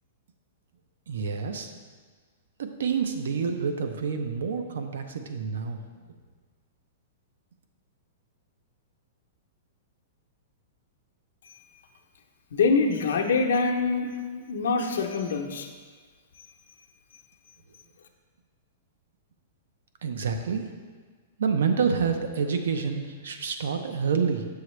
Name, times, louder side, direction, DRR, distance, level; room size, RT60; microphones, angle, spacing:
voice 1, 1.1-1.7 2.6-5.8 20.0-20.6 21.4-24.5, right 6 dB, 85° right, 7 dB, 0.7 m, -28 dB
voice 2, 12.5-15.7, left 4 dB, 80° left, 3 dB, 0.7 m, -25 dB
6.9 x 6.4 x 3.2 m, 1.6 s
supercardioid pair, 180°, 0 cm